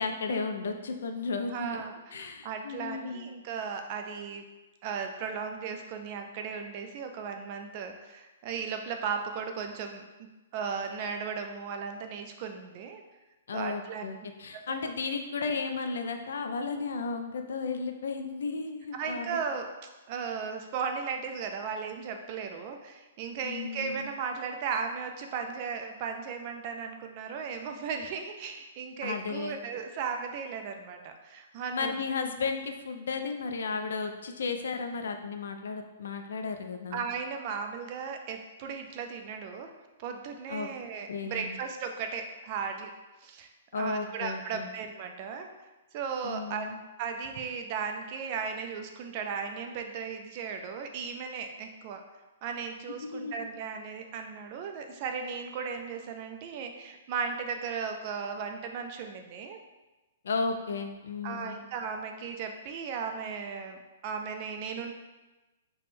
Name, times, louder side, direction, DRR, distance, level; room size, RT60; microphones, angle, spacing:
voice 1, 0.0-1.8 2.1-3.3 13.5-19.4 23.4-24.1 29.0-29.6 31.7-37.0 40.5-40.7 41.1-41.6 43.7-44.7 46.2-46.8 53.1-53.4 60.2-61.6, left 4 dB, 80° left, 6 dB, 0.4 m, -34 dB
voice 2, 1.5-4.4 4.8-10.0 10.5-13.0 13.5-14.0 14.5-14.9 18.9-19.7 20.1-32.0 36.9-39.7 40.0-42.9 43.2-43.5 43.7-45.5 45.9-46.7 47.0-52.0 52.4-59.6 61.2-64.9, right 6 dB, 30° right, 4 dB, 0.3 m, -36 dB
3.4 x 2.2 x 4.1 m, 1.1 s
hypercardioid pair, 170°, 0 cm